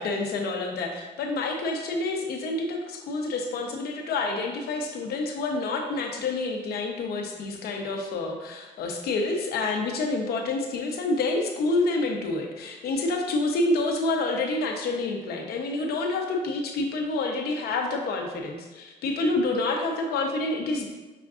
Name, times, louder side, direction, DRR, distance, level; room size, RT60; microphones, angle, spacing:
voice 1, 0.0-20.9, left 2 dB, 80° left, 3 dB, 0.7 m, -28 dB
5.8 x 3.5 x 2.4 m, 1.2 s
cardioid pair, 155°, 16 cm